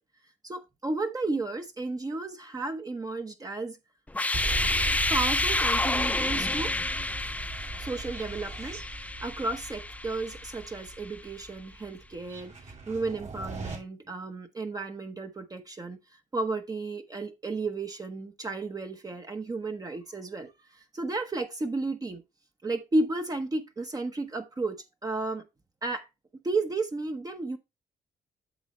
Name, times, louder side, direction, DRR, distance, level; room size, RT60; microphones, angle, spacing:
voice 1, 0.4-3.8 4.7-6.7 7.7-22.2 22.6-25.4 25.8-26.1 26.4-27.6, right 3 dB, 25° right, 1.0 m, -33 dB
sound 1, 4.1-10.9, left 2 dB, 10° left, 0.4 m, -30 dB
sound 2, 4.3-13.8, right 3 dB, 55° right, 2.8 m, -38 dB
8.2 x 6.3 x 3.2 m
cardioid pair, 95°, 15 cm